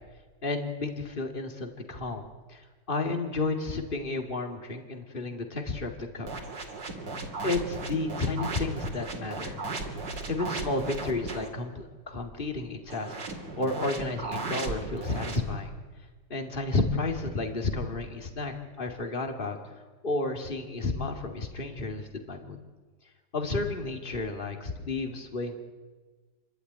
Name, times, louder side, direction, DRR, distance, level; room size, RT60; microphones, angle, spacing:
voice 1, 0.4-2.6 2.9-6.3 7.4-9.7 10.3-13.2 13.6-15.7 16.3-19.6 20.0-22.6 23.3-25.6, left 3 dB, 30° left, 4 dB, 2.5 m, -32 dB
sound 1, 6.3-11.5 12.9-15.4, right 3 dB, 75° right, 3.1 m, -36 dB
29.5 x 12.0 x 9.6 m, 1.3 s
omnidirectional pair, 1.9 m